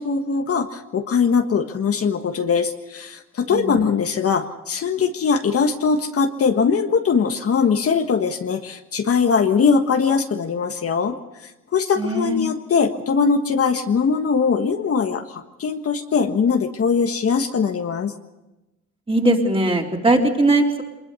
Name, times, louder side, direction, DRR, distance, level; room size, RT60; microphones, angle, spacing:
voice 1, 0.0-11.2 11.4-18.1, left 5 dB, 50° left, 6 dB, 1.5 m, -21 dB
voice 2, 12.0-12.4 19.1-20.8, right 2 dB, 20° right, 0 dB, 3.9 m, -19 dB
23.5 x 21.0 x 7.0 m, 1.0 s
cardioid pair, 90°, 30 cm